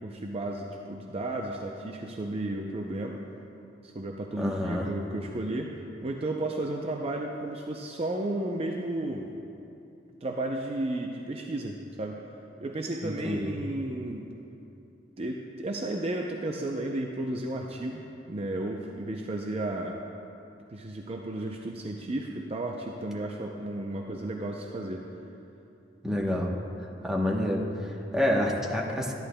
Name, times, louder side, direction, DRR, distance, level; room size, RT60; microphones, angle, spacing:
voice 1, 0.0-3.2 3.8-9.3 10.2-12.2 12.6-14.3 15.2-18.0 18.3-20.0 20.7-25.0, right 1 dB, 35° right, 1 dB, 0.5 m, -33 dB
voice 2, 4.4-4.9 13.0-13.5 26.0-26.5 27.0-29.1, left 1 dB, 5° right, -3 dB, 0.9 m, -28 dB
13.0 x 10.5 x 2.2 m, 2.7 s
head